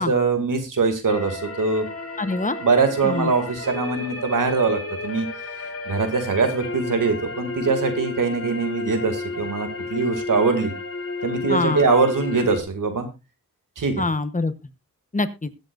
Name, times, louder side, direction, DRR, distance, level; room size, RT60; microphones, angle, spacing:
voice 1, 0.0-1.9 2.6-5.3 5.6-10.7 11.2-13.1 13.8-14.1, right 4 dB, 85° right, 6 dB, 2.3 m, -22 dB
sound 1, 1.1-12.6, left 3 dB, 50° left, 2.5 m, -32 dB
voice 2, 2.2-2.6 3.0-3.3 11.5-11.9 14.0-14.5 15.1-15.5, left 3 dB, 25° left, 12 dB, 1.0 m, -24 dB
21.5 x 7.8 x 2.5 m, 0.25 s
wide cardioid pair, 100°, 32 cm